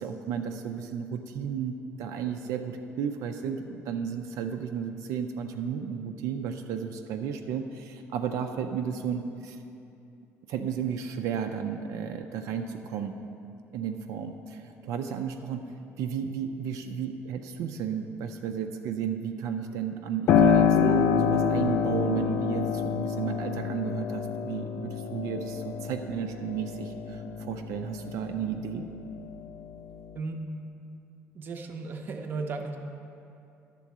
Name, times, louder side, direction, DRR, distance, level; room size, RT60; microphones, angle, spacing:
voice 1, 0.0-9.6 10.5-13.1 13.7-15.6 16.0-28.9, right 7 dB, 80° right, 5 dB, 0.5 m, -33 dB
Piano, 20.3-28.7 29.1-30.2, left 7 dB, 55° left, 0.4 m, -27 dB
sound 1, 20.7-28.4, left 3 dB, 80° left, 1.0 m, -34 dB
voice 2, 31.3-32.8, right 4 dB, 35° right, 4 dB, 0.6 m, -35 dB
11.0 x 3.8 x 7.3 m, 2.7 s
cardioid pair, 165°, 6 cm